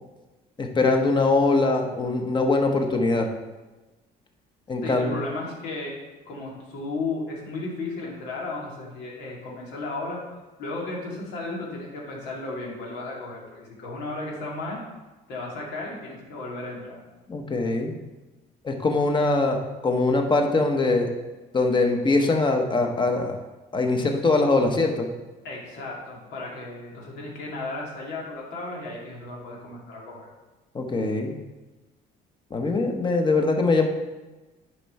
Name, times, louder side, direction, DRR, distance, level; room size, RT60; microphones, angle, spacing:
voice 1, 0.6-3.3 4.7-5.1 17.3-18.0 18.6-21.1 21.5-23.4 23.7-25.1 30.7-31.3 32.5-33.8, left 3 dB, 30° left, 3 dB, 1.1 m, -22 dB
voice 2, 4.8-5.9 6.3-10.2 10.6-14.8 15.3-17.0 25.4-30.3, left 2 dB, 85° left, -3 dB, 2.3 m, -34 dB
9.9 x 4.7 x 4.2 m, 1.1 s
cardioid pair, 110°, 17 cm